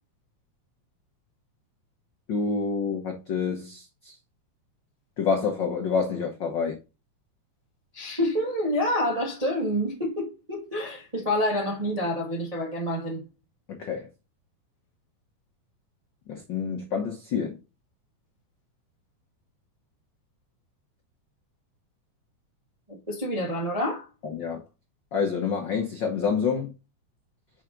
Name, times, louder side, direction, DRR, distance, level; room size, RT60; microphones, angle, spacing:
voice 1, 2.3-4.1 5.2-6.8 13.7-14.1 16.3-17.6 24.2-24.6 25.1-26.7, left 5 dB, 80° left, 1.0 m, -28 dB
voice 2, 7.9-13.2 22.9-24.1, equal, 30° right, 0.6 m, -28 dB
5.9 x 5.6 x 3.8 m
omnidirectional pair, 3.6 m